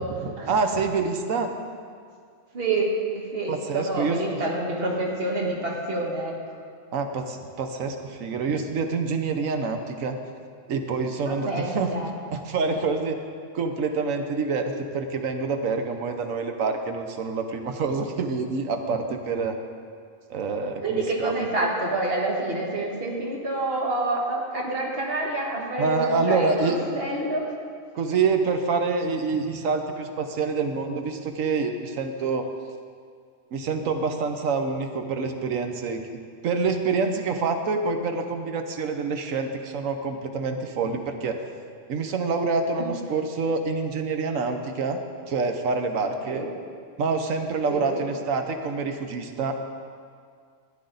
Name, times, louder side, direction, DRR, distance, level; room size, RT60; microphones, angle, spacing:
voice 1, 0.2-1.5 3.5-4.4 6.9-10.2 10.7-11.9 12.3-13.2 13.5-19.5 20.3-21.3 25.8-27.0 27.9-32.4 33.5-36.0 36.4-41.4 41.9-45.0 45.3-46.4 47.0-49.5, right 4 dB, 75° right, 5 dB, 1.2 m, -26 dB
voice 2, 2.5-2.9 3.1-6.6 11.3-12.1 20.8-27.5 42.8-42.9 46.2-46.5 47.7-48.0, right 2 dB, 45° right, -2 dB, 1.8 m, -28 dB
14.0 x 9.8 x 3.9 m, 2.2 s
omnidirectional pair, 1.4 m